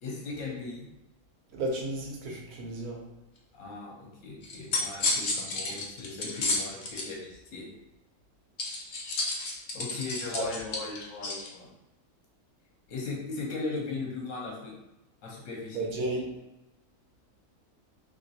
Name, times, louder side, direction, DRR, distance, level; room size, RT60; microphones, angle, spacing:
voice 1, 0.0-0.9 3.5-7.7 9.7-11.7 12.9-14.7 15.2-15.9, left 3 dB, 65° left, -3 dB, 1.1 m, -38 dB
voice 2, 1.5-3.0 10.3-10.4 15.7-16.3, right 2 dB, 80° right, -1 dB, 1.3 m, -33 dB
sound 1, 4.4-7.1 8.6-11.5, left 2 dB, 80° left, 0.4 m, -31 dB
2.9 x 2.9 x 2.7 m, 0.94 s
omnidirectional pair, 1.6 m